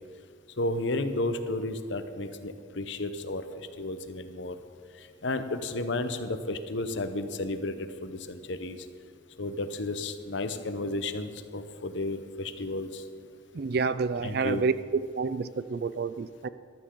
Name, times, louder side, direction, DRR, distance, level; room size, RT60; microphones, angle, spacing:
voice 1, 0.6-4.6 5.0-8.8 9.4-13.0 14.2-14.6, left 2 dB, 65° left, 9 dB, 0.8 m, -33 dB
voice 2, 13.5-16.5, right 4 dB, 50° right, 15 dB, 0.4 m, -29 dB
15.0 x 12.5 x 3.8 m, 2.2 s
head